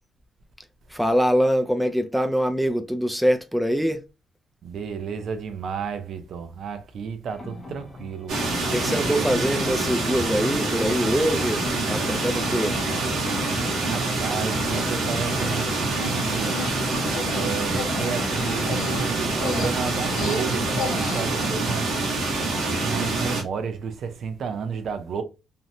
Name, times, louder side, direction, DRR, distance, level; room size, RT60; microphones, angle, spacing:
voice 1, 0.9-4.0 8.7-12.8, equal, ahead, 0.3 m, -23 dB
voice 2, 4.6-8.4 13.8-22.0 22.4-25.2, right 6 dB, 65° right, 0.5 m, -32 dB
sound 1, 7.3-21.2, left 3 dB, 25° left, 0.7 m, -40 dB
sound 2, 8.3-23.4, right 2 dB, 80° right, 1.1 m, -26 dB
Human voice, 9.6-9.7 10.4-10.8 11.4-11.5 11.8-12.0 12.3-12.5 12.9-13.1 13.5-14.4 14.7-15.0 15.3-21.6, left 5 dB, 85° left, 0.6 m, -36 dB
2.7 x 2.0 x 2.6 m
cardioid pair, 90°, 0 cm